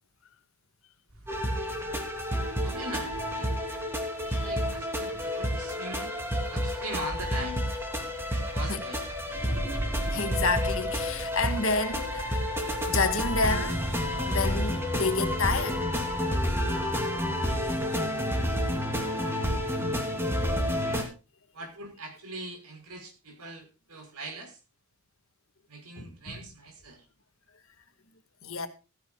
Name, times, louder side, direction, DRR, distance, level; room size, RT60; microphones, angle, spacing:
sound 1, 1.1-17.9, right 1 dB, 70° right, 4.6 m, -40 dB
sound 2, 1.3-21.0, equal, 10° right, 3.0 m, -30 dB
voice 1, 1.4-2.0 2.6-3.6 4.2-6.1 6.5-7.7 8.3-9.0 20.8-21.1 21.5-24.6 25.7-27.1, right 1 dB, 90° right, 5.6 m, -41 dB
voice 2, 4.2-4.5 8.7-8.8 10.1-12.5 12.9-13.8 14.3-15.8 26.0-26.4 28.4-28.7, left 4 dB, 65° left, 1.8 m, -29 dB
15.5 x 15.5 x 2.4 m
head